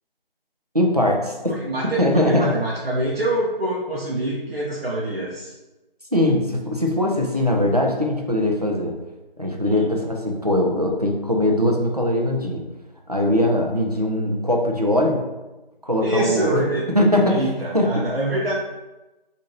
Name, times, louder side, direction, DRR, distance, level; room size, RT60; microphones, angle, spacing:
voice 1, 0.7-1.4 2.0-2.5 6.1-8.9 9.4-12.6 13.1-15.3 15.8-16.6 16.9-17.5 17.7-18.0, left 1 dB, 45° right, 0 dB, 0.4 m, -21 dB
voice 2, 1.5-5.5 9.6-9.9 16.0-16.9 17.2-18.5, right 1 dB, 80° right, -6 dB, 0.7 m, -25 dB
2.6 x 2.5 x 3.1 m, 1.1 s
figure-of-eight pair, 175°, 29 cm